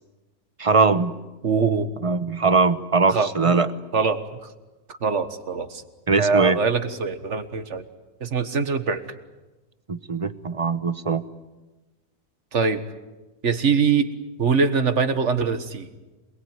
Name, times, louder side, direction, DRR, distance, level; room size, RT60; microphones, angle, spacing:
voice 1, 0.6-1.1 2.0-3.7 6.1-6.6 9.9-11.2, right 4 dB, 25° right, 13 dB, 0.8 m, -21 dB
voice 2, 1.4-1.9 3.1-3.5 3.9-4.5 5.0-5.8 6.2-7.8 8.2-9.1 12.5-12.8 13.4-14.1 14.4-15.9, right 5 dB, 50° right, 10 dB, 1.7 m, -23 dB
27.5 x 21.0 x 9.4 m, 1.1 s
omnidirectional pair, 1.6 m